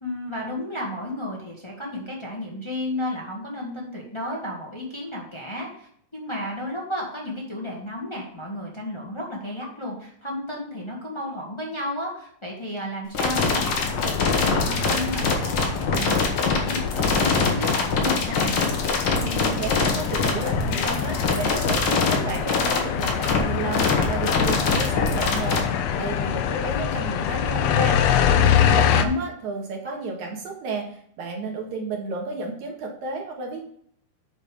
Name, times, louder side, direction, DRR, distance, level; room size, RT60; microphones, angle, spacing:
voice 1, 0.0-18.5 28.9-29.2, left 1 dB, 25° left, -3 dB, 0.6 m, -33 dB
sound 1, 13.1-25.6, left 4 dB, 50° left, 1.5 m, -23 dB
sound 2, 13.6-29.0, left 9 dB, 75° left, 1.5 m, -25 dB
voice 2, 19.2-25.6 25.9-33.6, right 3 dB, 70° right, 1 dB, 2.8 m, -32 dB
8.3 x 5.0 x 5.3 m, 0.64 s
omnidirectional pair, 3.6 m